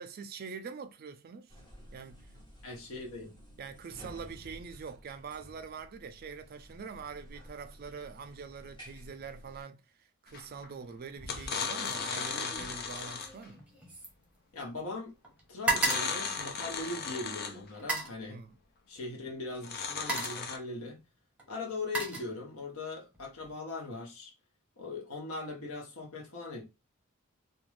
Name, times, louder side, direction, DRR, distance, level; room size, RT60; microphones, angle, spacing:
voice 1, 0.0-1.6 1.9-2.2 3.6-13.6 18.3-18.5, right 5 dB, 40° right, 0.3 m, -44 dB
sound 1, 1.5-9.6, equal, 20° left, 1.3 m, -53 dB
voice 2, 2.6-3.3 14.5-15.1 15.5-18.4 18.9-21.0 21.5-24.3 24.8-26.6, left 3 dB, 70° left, 0.8 m, -40 dB
sound 2, 10.3-10.7 11.2-13.5 15.7-17.7 19.6-20.6, left 5 dB, 45° left, 0.4 m, -36 dB
sound 3, 11.2-11.5 11.8-15.0 15.2-17.1 17.7-18.2 19.2-19.4 19.8-20.5 21.4-22.8 23.1-23.5, right 2 dB, 5° right, 0.8 m, -36 dB
2.5 x 2.2 x 3.1 m
head